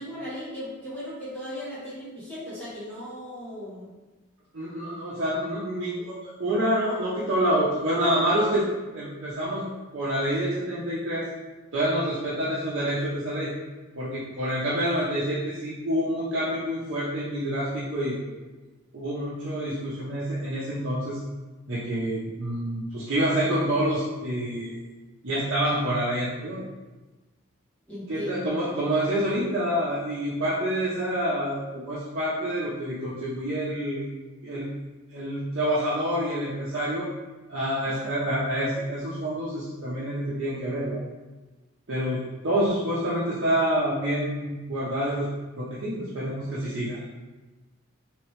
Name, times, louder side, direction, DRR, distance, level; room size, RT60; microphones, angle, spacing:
voice 1, 0.0-3.9 27.9-28.6 37.8-38.1, equal, 5° left, -11 dB, 1.0 m, -37 dB
voice 2, 4.5-8.7 8.9-9.6 9.9-11.3 11.7-13.5 13.9-18.3 18.9-21.2 21.7-24.8 25.2-26.6 28.1-34.1 34.4-34.7 35.1-37.1 37.5-41.0 41.9-45.3 45.6-47.0, right 1 dB, 55° right, -9 dB, 0.6 m, -27 dB
3.4 x 2.9 x 3.2 m, 1.2 s
head